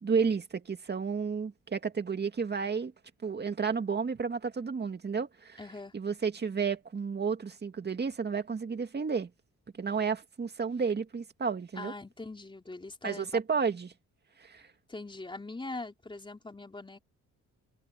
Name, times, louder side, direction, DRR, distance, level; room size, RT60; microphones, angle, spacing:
voice 1, 0.0-2.9 3.2-5.6 5.9-9.3 9.8-11.9 13.0-13.9 14.4-14.6, right 5 dB, 35° right, 2.3 m, -31 dB
voice 2, 5.6-5.9 11.7-13.3 14.9-17.0, left 2 dB, 15° left, 3.7 m, -42 dB
open air
cardioid pair, 90°, 30 cm